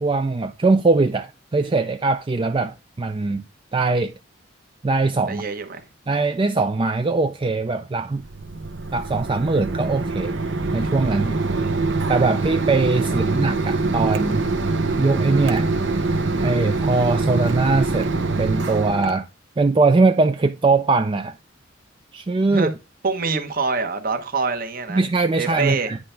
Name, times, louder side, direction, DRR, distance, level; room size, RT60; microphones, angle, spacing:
voice 1, 0.0-3.4 3.7-4.1 4.8-5.4 6.1-8.2 8.9-10.4 10.7-11.4 12.1-14.5 15.0-15.7 16.4-19.3 19.6-21.3 22.1-22.7 24.9-26.0, right 3 dB, 25° right, 0.4 m, -21 dB
voice 2, 5.3-5.8 11.3-11.7 13.1-13.2 22.5-22.7 23.0-25.0 25.4-25.9, right 4 dB, 45° right, 1.1 m, -26 dB
Mechanisms, 8.1-19.1, right 3 dB, 65° right, 1.1 m, -24 dB
9.6 x 3.3 x 5.7 m
head